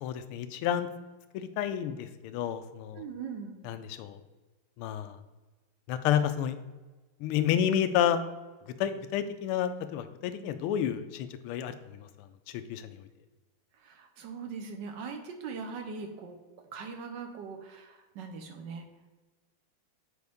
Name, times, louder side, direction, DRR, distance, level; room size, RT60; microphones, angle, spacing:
voice 1, 0.0-0.9 1.3-3.0 3.6-4.2 4.8-5.2 5.9-6.6 7.2-8.2 8.8-13.1, left 9 dB, 85° left, 10 dB, 1.5 m, -30 dB
voice 2, 2.9-3.6 13.8-16.4 16.7-18.9, right 5 dB, 65° right, 4 dB, 1.3 m, -41 dB
8.0 x 5.0 x 3.5 m, 1.2 s
omnidirectional pair, 2.4 m